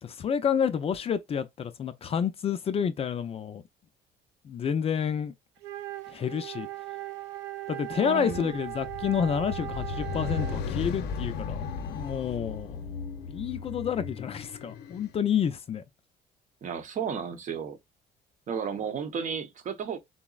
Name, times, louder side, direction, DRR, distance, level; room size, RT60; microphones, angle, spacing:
voice 1, 0.0-3.6 4.4-5.3 6.1-6.7 7.7-13.0 13.3-15.8, left 7 dB, 35° left, 0.4 m, -29 dB
Wind instrument woodwind instrument, 5.6-10.8, right 17 dB, 85° right, 0.5 m, -38 dB
voice 2, 8.0-8.5 16.6-17.8 18.5-20.0, right 7 dB, 50° right, 0.8 m, -33 dB
sound 1, 8.7-15.1, left 5 dB, 80° left, 0.6 m, -36 dB
3.9 x 2.0 x 2.3 m
cardioid pair, 110°, 17 cm